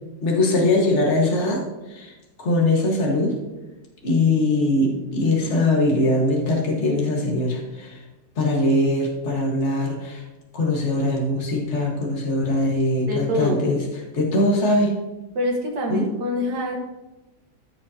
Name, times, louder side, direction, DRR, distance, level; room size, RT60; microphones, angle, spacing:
voice 1, 0.2-1.6 1.9-2.1 2.4-3.3 4.0-8.0 8.4-10.2 10.5-13.8 14.1-14.9 15.9-16.1, left 2 dB, 45° left, -2 dB, 1.9 m, -21 dB
voice 2, 13.1-13.7 15.4-16.8, left 1 dB, 85° right, 0 dB, 2.0 m, -25 dB
14.5 x 6.3 x 2.8 m, 1.1 s
omnidirectional pair, 1.8 m